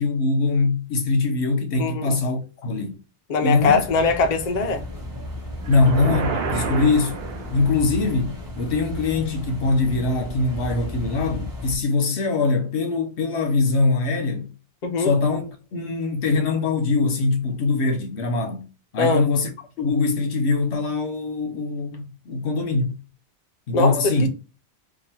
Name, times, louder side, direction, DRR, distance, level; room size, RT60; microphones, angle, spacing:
voice 1, 0.0-3.0 3.4-3.8 5.7-7.2 7.5-14.5 15.0-18.7 18.9-19.5 19.8-22.9 23.7-24.3, left 3 dB, 75° left, 1.2 m, -22 dB
voice 2, 1.8-2.1 3.3-4.8 14.8-15.1 19.0-19.2 23.7-24.3, left 4 dB, 45° left, 0.6 m, -21 dB
sound 1, 3.5-11.8, left 1 dB, 20° right, 0.9 m, -34 dB
sound 2, 5.6-8.0, right 4 dB, 65° right, 0.9 m, -29 dB
3.0 x 2.5 x 4.2 m
omnidirectional pair, 1.1 m